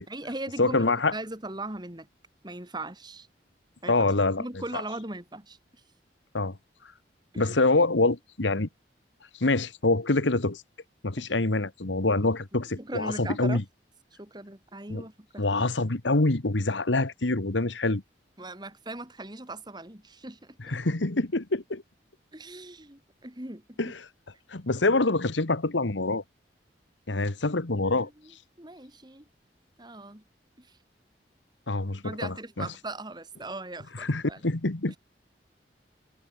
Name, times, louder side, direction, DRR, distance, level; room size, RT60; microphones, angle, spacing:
voice 1, 0.1-2.1 2.4-3.3 3.8-4.1 4.4-5.6 7.3-7.5 11.2-11.3 12.8-13.6 14.2-15.7 18.4-20.8 22.3-23.9 27.9-28.3 28.6-29.3 29.8-30.2 30.6-30.8 32.0-34.4 34.9-35.0, right 2 dB, 25° right, 2.6 m, -39 dB
voice 2, 0.6-1.1 3.9-4.4 6.3-6.6 7.4-8.7 9.4-10.6 11.0-13.6 14.9-15.0 15.4-18.0 20.7-21.8 23.8-23.9 24.5-26.2 27.1-28.1 31.7-32.7 34.0-35.0, left 2 dB, 85° left, 1.6 m, -25 dB
head